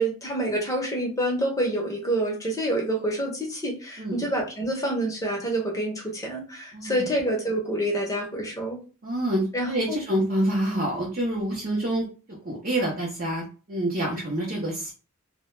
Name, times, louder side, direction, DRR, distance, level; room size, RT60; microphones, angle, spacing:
voice 1, 0.0-8.8 9.5-10.0, right 1 dB, 15° left, -1 dB, 0.6 m, -27 dB
voice 2, 6.7-7.1 9.0-14.9, right 1 dB, 40° right, -4 dB, 0.6 m, -27 dB
2.2 x 2.1 x 3.0 m, 0.36 s
head